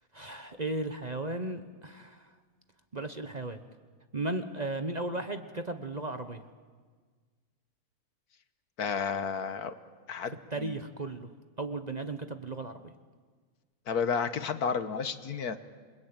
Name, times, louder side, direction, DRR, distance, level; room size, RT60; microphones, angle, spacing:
voice 1, 0.1-2.3 2.9-3.6 4.1-6.4 10.5-11.3 11.6-12.9, right 2 dB, 30° right, 8 dB, 1.1 m, -35 dB
voice 2, 8.8-9.7 10.1-10.8 13.9-15.6, left 6 dB, 75° left, 10 dB, 1.7 m, -32 dB
28.5 x 22.0 x 8.9 m, 1.5 s
omnidirectional pair, 1.7 m